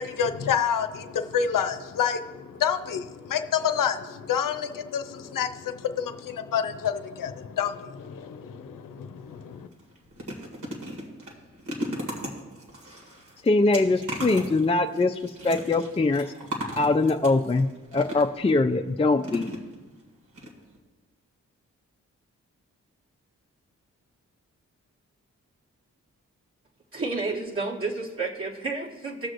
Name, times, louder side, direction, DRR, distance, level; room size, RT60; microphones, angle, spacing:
voice 1, 0.0-9.7, left 8 dB, 75° left, 9 dB, 0.7 m, -28 dB
sound 1, 9.2-9.3 9.7-18.5 19.2-20.0 20.3-20.5 20.7-20.8, equal, 65° right, 2.1 m, -37 dB
voice 2, 13.4-16.3 16.8-17.7 17.9-19.5, left 3 dB, 20° left, 5 dB, 0.5 m, -22 dB
voice 3, 26.9-29.3, right 3 dB, 40° right, -4 dB, 1.7 m, -30 dB
18.5 x 6.3 x 2.6 m, 1.2 s
cardioid pair, 45°, 33 cm